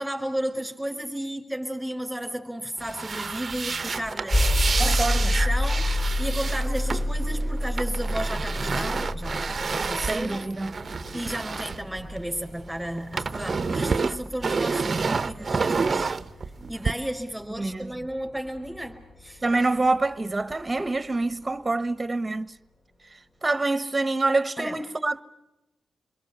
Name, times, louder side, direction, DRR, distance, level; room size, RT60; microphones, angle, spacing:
voice 1, 0.0-4.4 4.8-10.5 11.1-16.1 16.7-19.4 24.6-24.8, right 1 dB, 5° right, 4.4 m, -33 dB
sound 1, 2.8-12.6 12.8-16.9, right 4 dB, 45° right, 0.8 m, -29 dB
sound 2, 4.3-20.2, left 1 dB, 35° left, 2.8 m, -30 dB
voice 2, 4.8-5.3 10.0-10.7 17.6-17.9 19.4-22.5 23.4-25.2, right 2 dB, 25° right, 1.3 m, -26 dB
27.0 x 22.5 x 6.8 m
supercardioid pair, 50°, 0 cm